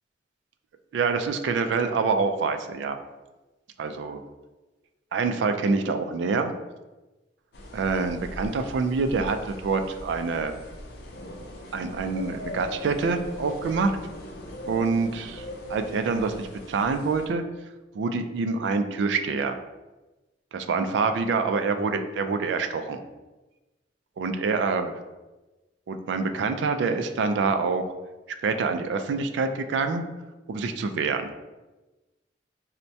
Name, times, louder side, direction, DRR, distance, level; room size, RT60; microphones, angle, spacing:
voice 1, 0.9-3.0 3.8-4.2 5.1-6.5 7.7-10.6 11.7-14.0 14.6-17.4 17.9-19.6 20.5-23.0 24.2-24.9 25.9-27.9 28.4-30.0 30.5-31.3, right 4 dB, 70° right, 7 dB, 0.3 m, -26 dB
sound 1, 7.5-17.3, left 1 dB, 60° left, 0.5 m, -40 dB
4.3 x 2.1 x 2.6 m, 1.1 s
head